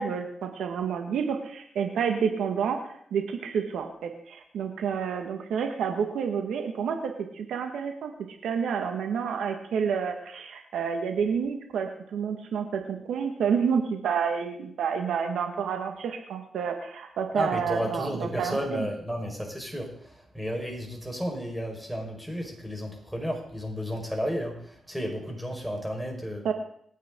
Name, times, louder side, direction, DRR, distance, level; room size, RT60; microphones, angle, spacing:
voice 1, 0.0-2.8 3.1-8.1 8.4-18.9 26.4-26.5, right 6 dB, 90° right, 4 dB, 1.8 m, -29 dB
voice 2, 17.3-26.5, equal, 5° right, 1 dB, 5.1 m, -33 dB
27.5 x 9.3 x 3.9 m, 0.65 s
cardioid pair, 80°, 0 cm